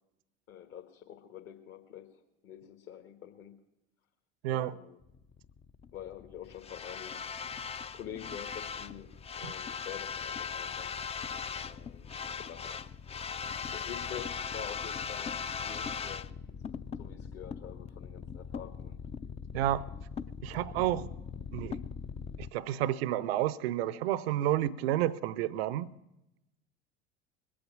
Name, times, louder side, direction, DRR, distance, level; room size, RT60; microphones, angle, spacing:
voice 1, 0.5-3.6 4.5-5.0 5.9-10.9 11.7-16.4 16.8-19.0, left 9 dB, 45° left, 1.6 m, -47 dB
sound 1, 5.0-22.5, left 6 dB, 20° left, 0.5 m, -39 dB
voice 2, 19.5-19.9 20.4-21.1 21.5-21.8 22.4-25.9, right 13 dB, 70° right, 0.6 m, -30 dB
20.5 x 8.6 x 7.2 m
hypercardioid pair, 75°, 32 cm